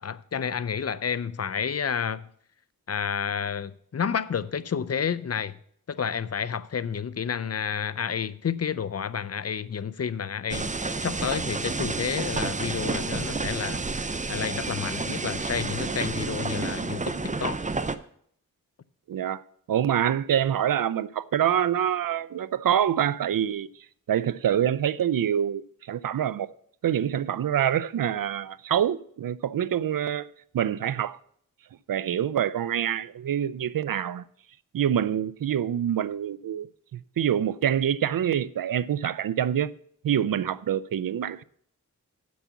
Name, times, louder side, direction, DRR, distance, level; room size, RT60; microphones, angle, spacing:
voice 1, 0.0-2.3 2.9-5.6 5.9-10.7 11.0-17.6, left 7 dB, 50° left, 0.5 m, -30 dB
sound 1, 10.5-18.0, right 3 dB, 25° right, 0.6 m, -30 dB
voice 2, 19.1-19.4 19.7-23.7 24.1-26.5 26.8-30.3 30.5-31.2 31.9-34.2 34.7-39.7 40.0-41.4, right 10 dB, 80° right, 0.5 m, -26 dB
8.3 x 6.2 x 7.0 m
wide cardioid pair, 60°, 33 cm